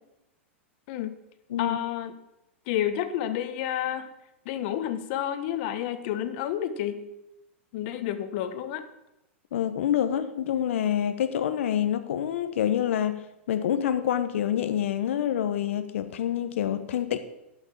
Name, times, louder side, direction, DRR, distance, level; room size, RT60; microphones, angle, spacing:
voice 1, 1.6-2.1 2.7-4.1 4.4-7.1 7.7-8.8, left 11 dB, 55° left, 10 dB, 1.4 m, -30 dB
voice 2, 9.5-13.2 13.5-17.2, left 10 dB, 75° left, 10 dB, 1.0 m, -27 dB
12.0 x 6.4 x 7.5 m, 0.89 s
hypercardioid pair, 110°, 7 cm